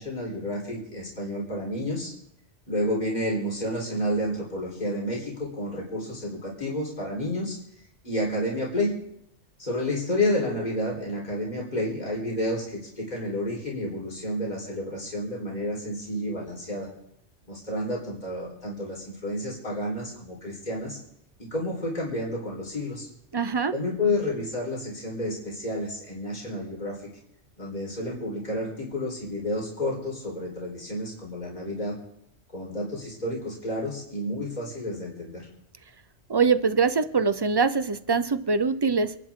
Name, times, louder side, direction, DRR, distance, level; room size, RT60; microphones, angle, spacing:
voice 1, 0.0-2.1 2.7-7.6 8.0-9.0 9.6-16.9 17.5-21.0 21.4-23.1 23.7-27.1 27.6-31.9 32.5-35.5, left 1 dB, 35° left, -3 dB, 4.3 m, -30 dB
voice 2, 23.3-23.7 36.3-39.2, right 5 dB, 35° right, 13 dB, 0.4 m, -23 dB
28.0 x 11.0 x 3.7 m, 0.76 s
omnidirectional pair, 1.2 m